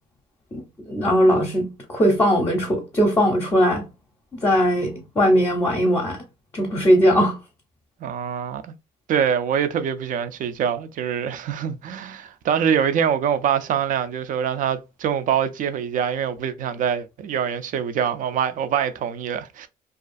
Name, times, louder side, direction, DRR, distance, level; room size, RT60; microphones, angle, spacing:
voice 1, 0.9-3.9 4.4-6.2 6.5-7.4, equal, 20° left, 0.6 m, -19 dB
voice 2, 8.0-8.7 9.1-19.7, right 8 dB, 50° right, 0.4 m, -24 dB
2.4 x 2.4 x 2.4 m
cardioid pair, 110°, 17 cm